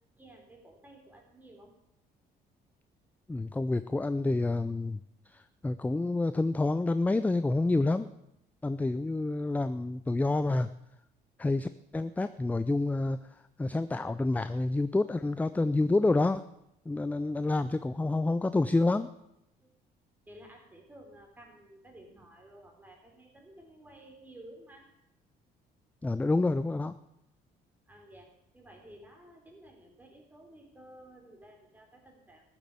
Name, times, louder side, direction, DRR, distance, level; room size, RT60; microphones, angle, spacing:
voice 1, 0.2-1.7 19.6-19.7 20.3-24.9 27.9-28.3 28.5-32.5, right 1 dB, 10° right, 1 dB, 3.8 m, -53 dB
voice 2, 3.3-8.1 8.6-10.7 11.4-13.2 13.6-16.4 16.9-19.1 26.0-26.9, left 2 dB, 10° left, 13 dB, 0.4 m, -28 dB
14.0 x 7.5 x 8.2 m, 0.83 s
cardioid pair, 110°, 17 cm